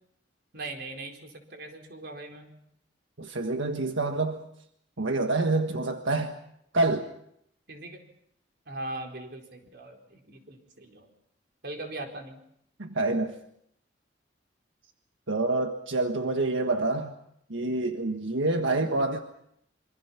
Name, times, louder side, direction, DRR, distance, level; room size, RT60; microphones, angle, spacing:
voice 1, 0.5-2.5 7.7-8.0 8.7-11.1 11.6-12.4 18.4-18.9, right 2 dB, 60° right, 3 dB, 4.5 m, -40 dB
voice 2, 3.2-4.4 5.0-6.4 6.7-7.1 12.8-13.3 15.3-17.1 17.5-19.2, right 2 dB, 90° right, 5 dB, 1.6 m, -27 dB
26.5 x 25.0 x 5.9 m, 0.72 s
head